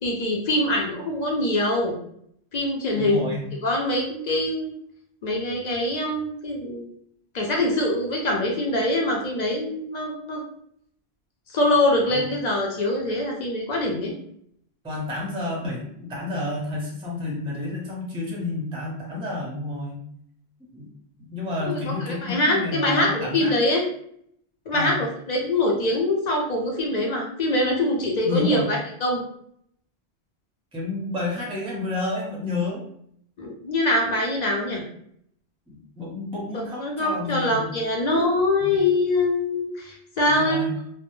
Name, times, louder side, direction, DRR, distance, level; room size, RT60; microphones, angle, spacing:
voice 1, 0.0-1.9 2.5-3.4 3.6-4.7 5.2-6.9 7.3-10.4 11.5-14.1 21.6-23.8 24.7-29.2 33.4-34.8 36.5-40.7, left 1 dB, 55° left, 0 dB, 0.5 m, -24 dB
voice 2, 2.9-3.5 12.1-12.3 14.8-20.0 20.7-20.9 21.2-23.5 24.7-25.0 28.2-28.7 30.7-32.8 35.7-37.9 38.6-38.8 40.3-40.8, left 2 dB, 10° right, -3 dB, 0.4 m, -30 dB
2.1 x 2.0 x 2.9 m, 0.68 s
omnidirectional pair, 1.1 m